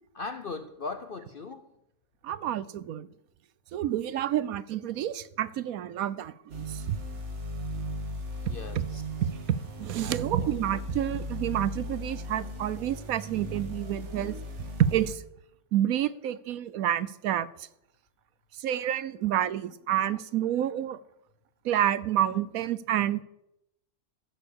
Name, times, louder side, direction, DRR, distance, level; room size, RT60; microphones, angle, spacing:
voice 1, 0.1-1.7 8.5-9.0 10.0-10.5, left 4 dB, 55° left, 9 dB, 0.6 m, -39 dB
voice 2, 2.2-3.1 3.7-7.0 9.2-14.4 14.8-15.2 15.7-17.5 18.6-21.0 21.6-23.2, right 11 dB, 70° right, 17 dB, 1.0 m, -29 dB
sound 1, 6.5-15.1, equal, 50° right, 1.7 m, -37 dB
14.5 x 6.6 x 7.0 m, 0.83 s
omnidirectional pair, 1.6 m